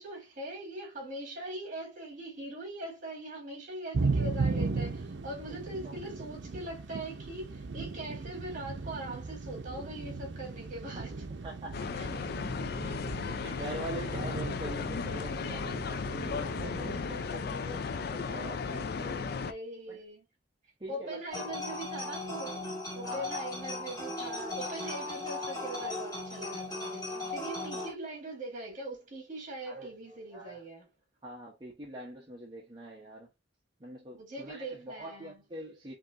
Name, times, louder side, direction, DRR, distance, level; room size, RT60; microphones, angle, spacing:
voice 1, 0.0-11.2 11.9-12.1 12.8-13.0 19.4-20.3 20.9-22.6 22.9-30.9 34.1-35.4, right 1 dB, 45° right, 2.2 m, -41 dB
sound 1, 3.9-17.3, right 4 dB, 70° right, 0.6 m, -37 dB
voice 2, 11.4-12.6 13.0-19.4 19.9-20.0 20.8-21.8 23.0-23.5 27.1-27.3 29.7-29.9 30.3-30.6 31.2-33.3 33.8-35.9, right 1 dB, 25° right, 0.9 m, -44 dB
sound 2, 11.7-19.5, left 5 dB, 60° left, 0.4 m, -35 dB
sound 3, 21.3-27.9, left 2 dB, 20° left, 2.0 m, -37 dB
5.1 x 2.9 x 2.5 m
head